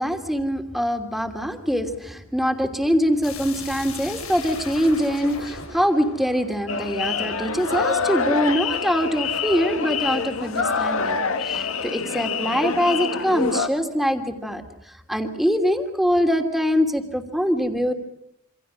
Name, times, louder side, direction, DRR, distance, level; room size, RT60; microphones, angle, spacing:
voice 1, 0.0-17.9, equal, ahead, 5 dB, 3.0 m, -23 dB
sound 1, 3.2-7.9, left 5 dB, 85° left, 7.7 m, -39 dB
sound 2, 6.7-13.7, left 5 dB, 70° left, 2.0 m, -26 dB
28.0 x 27.0 x 6.3 m, 0.80 s
head